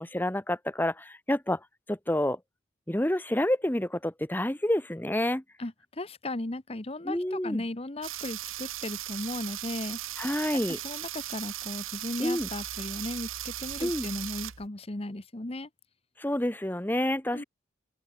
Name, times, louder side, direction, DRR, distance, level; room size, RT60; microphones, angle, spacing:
voice 1, 0.0-1.6 1.9-2.4 2.9-5.4 7.0-7.6 10.2-10.8 12.2-12.5 13.8-14.1 16.2-17.4, left 1 dB, 10° left, 0.9 m, -28 dB
voice 2, 5.6-10.0 10.5-15.7 17.3-17.4, left 1 dB, 30° left, 1.1 m, -36 dB
sound 1, 8.0-14.7, right 13 dB, 80° right, 1.0 m, -37 dB
open air
head